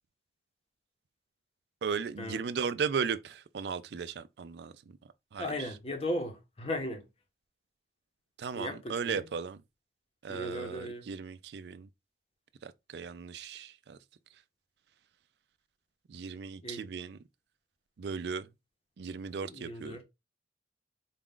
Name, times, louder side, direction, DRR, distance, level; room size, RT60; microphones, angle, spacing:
voice 1, 1.8-5.7 8.4-9.6 10.2-11.9 12.6-14.0 16.1-17.2 18.0-18.5 19.0-20.0, right 6 dB, 70° right, 0.4 m, -36 dB
voice 2, 5.4-7.0 8.5-9.3 10.3-11.1 16.6-16.8 19.4-20.0, left 1 dB, 30° left, 0.9 m, -37 dB
4.1 x 2.4 x 3.6 m
head